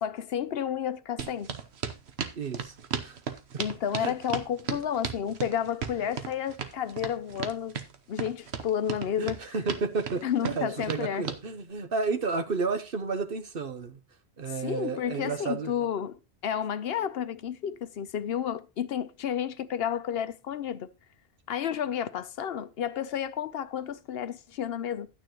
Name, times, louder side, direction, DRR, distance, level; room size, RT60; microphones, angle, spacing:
voice 1, 0.0-1.5 3.6-7.8 8.1-9.4 10.2-11.2 14.6-20.9 21.5-25.1, left 9 dB, 75° left, 0.9 m, -31 dB
sound 1, 1.2-11.4, right 7 dB, 85° right, 1.2 m, -35 dB
voice 2, 2.3-2.7 3.0-3.2 4.0-4.1 4.7-4.8 9.2-14.0 14.4-15.7, right 4 dB, 60° right, 1.2 m, -32 dB
11.5 x 9.1 x 3.0 m
omnidirectional pair, 1.1 m